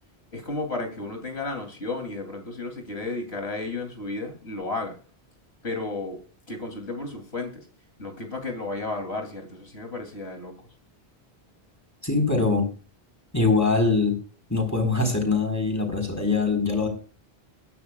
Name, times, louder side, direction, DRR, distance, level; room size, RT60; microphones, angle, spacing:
voice 1, 0.3-5.0 5.6-7.7 8.0-10.6, left 3 dB, 85° left, 3.4 m, -33 dB
voice 2, 12.0-12.7 13.3-14.2 14.5-16.9, left 3 dB, 15° left, 4.4 m, -23 dB
22.5 x 10.0 x 2.4 m
omnidirectional pair, 1.1 m